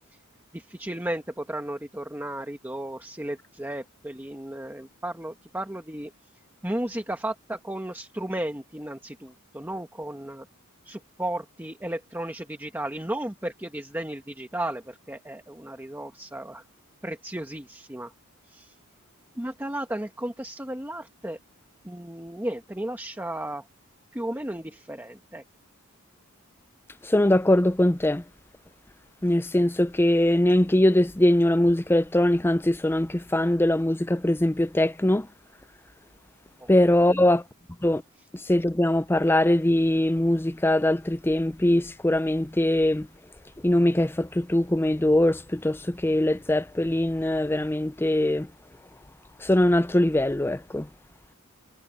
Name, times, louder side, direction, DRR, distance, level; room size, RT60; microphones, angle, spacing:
voice 1, 0.5-6.1 6.6-10.5 10.8-16.6 17.0-18.1 18.5-18.8 19.3-21.4 21.8-23.6 24.1-25.4 36.6-36.7 37.1-37.2 38.2-38.3, right 1 dB, 10° right, 1.2 m, -34 dB
voice 2, 27.1-28.2 29.2-35.3 36.7-37.4 37.8-38.0 38.5-43.1 43.6-48.5 49.4-50.9, left 1 dB, 10° left, 0.5 m, -22 dB
head